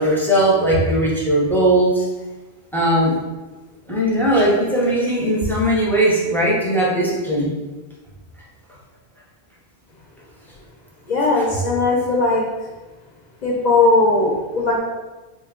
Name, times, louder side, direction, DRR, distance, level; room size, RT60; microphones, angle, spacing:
voice 1, 0.0-2.0 2.7-3.1 3.9-7.5 11.3-11.4, right 1 dB, 5° left, -5 dB, 0.5 m, -18 dB
voice 2, 11.1-12.5 13.4-14.8, left 3 dB, 55° left, -2 dB, 0.5 m, -18 dB
3.2 x 2.2 x 3.6 m, 1.2 s
omnidirectional pair, 1.1 m